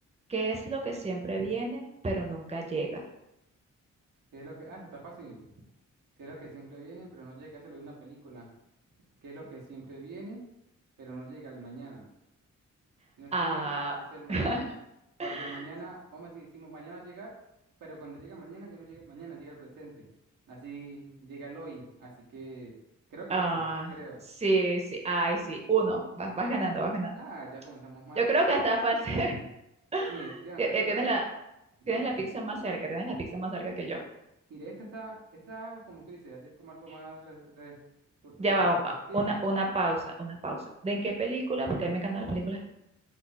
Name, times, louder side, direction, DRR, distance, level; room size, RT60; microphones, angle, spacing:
voice 1, 0.3-3.0 13.3-14.0 14.3-14.6 15.2-15.6 23.3-23.9 24.4-27.2 28.2-29.4 29.9-30.3 30.6-31.2 31.9-34.0 38.4-42.6, right 2 dB, 20° right, 1 dB, 0.6 m, -29 dB
voice 2, 4.3-5.5 6.2-8.5 9.2-10.4 11.0-12.1 13.2-13.7 14.1-14.7 15.2-17.3 17.8-20.1 20.5-22.8 23.1-23.6 23.9-24.2 27.1-28.3 30.1-31.1 31.8-32.1 34.5-35.2 35.5-37.8 38.2-38.6 38.8-39.3, right 3 dB, 90° right, -3 dB, 0.8 m, -44 dB
2.4 x 2.0 x 3.8 m, 0.86 s
cardioid pair, 50°, 32 cm